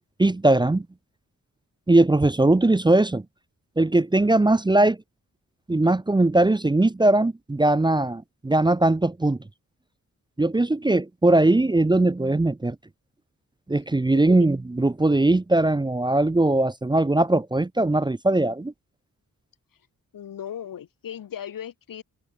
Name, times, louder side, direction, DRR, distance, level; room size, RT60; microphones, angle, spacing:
voice 1, 0.2-0.9 1.9-3.2 3.8-5.0 5.7-9.4 10.4-12.8 13.7-18.7, right 2 dB, 15° right, 0.6 m, -20 dB
voice 2, 20.1-22.0, left 9 dB, 80° left, 1.2 m, -37 dB
wide cardioid pair, 135°, 33 cm